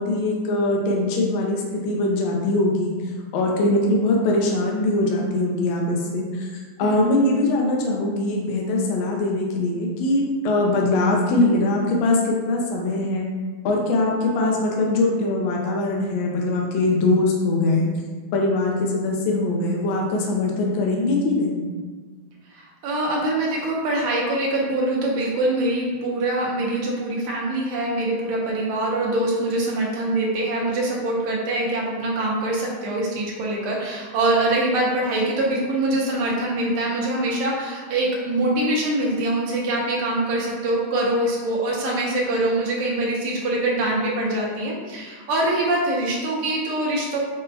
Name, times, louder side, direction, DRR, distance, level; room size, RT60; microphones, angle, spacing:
voice 1, 0.0-13.3 13.6-18.0 18.3-21.7, left 2 dB, 75° left, -1 dB, 1.3 m, -22 dB
voice 2, 6.8-7.1 22.5-47.2, right 1 dB, 85° right, -3 dB, 1.7 m, -24 dB
5.5 x 2.1 x 2.7 m, 1.4 s
omnidirectional pair, 2.3 m